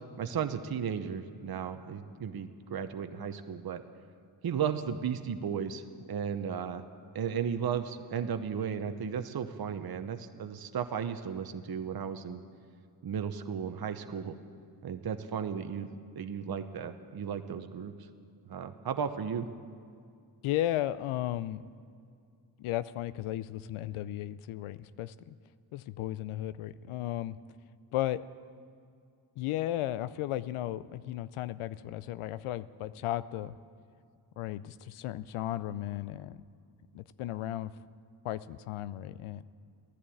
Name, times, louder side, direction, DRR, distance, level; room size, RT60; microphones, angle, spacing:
voice 1, 0.2-3.8 4.4-5.8 6.1-6.8 7.1-12.4 13.0-14.3 14.8-15.9 16.2-17.9 18.5-19.5, right 7 dB, 50° right, 8 dB, 1.0 m, -34 dB
voice 2, 20.4-21.6 22.6-25.4 25.7-27.4 27.9-28.2 29.4-33.6 34.4-36.4 36.9-37.8 38.2-39.4, left 13 dB, 85° left, 16 dB, 0.6 m, -35 dB
15.0 x 11.0 x 8.6 m, 2.3 s
supercardioid pair, 55°, 49 cm